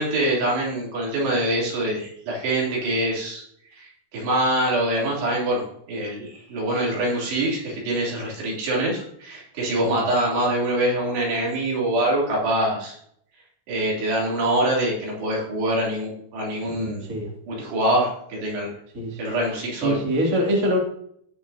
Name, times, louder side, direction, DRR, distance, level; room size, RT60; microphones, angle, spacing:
voice 1, 0.0-3.4 3.7-13.0 13.7-17.0 17.5-18.7 19.2-20.0, right 1 dB, 80° right, -4 dB, 5.3 m, -24 dB
voice 2, 16.6-17.3 18.9-19.2 19.8-20.8, equal, 25° right, -2 dB, 2.3 m, -24 dB
17.0 x 6.9 x 2.8 m, 0.69 s
omnidirectional pair, 4.7 m